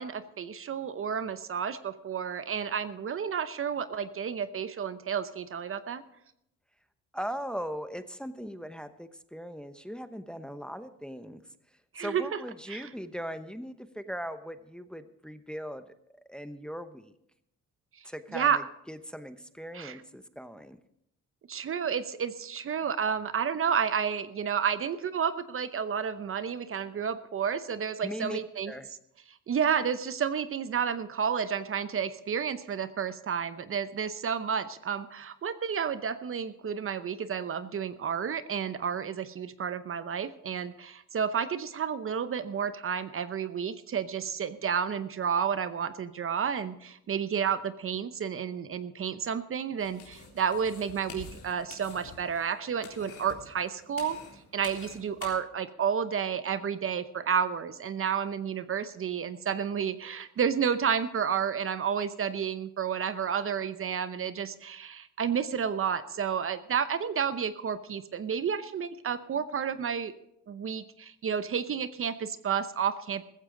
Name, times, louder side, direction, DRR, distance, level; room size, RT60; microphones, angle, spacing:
voice 1, 0.0-6.0 11.9-12.4 12.7-12.9 18.3-18.6 19.7-20.0 21.5-28.7 29.5-54.2 54.5-70.1 70.5-73.3, right 7 dB, 45° right, 12 dB, 0.8 m, -31 dB
voice 2, 7.1-11.4 12.0-15.9 16.3-17.1 18.0-20.8 28.0-28.4 28.6-28.9, equal, 5° left, 10 dB, 0.9 m, -39 dB
sound 1, 49.8-55.3, left 4 dB, 80° left, 3.8 m, -48 dB
15.0 x 14.5 x 3.9 m, 0.77 s
cardioid pair, 90°, 30 cm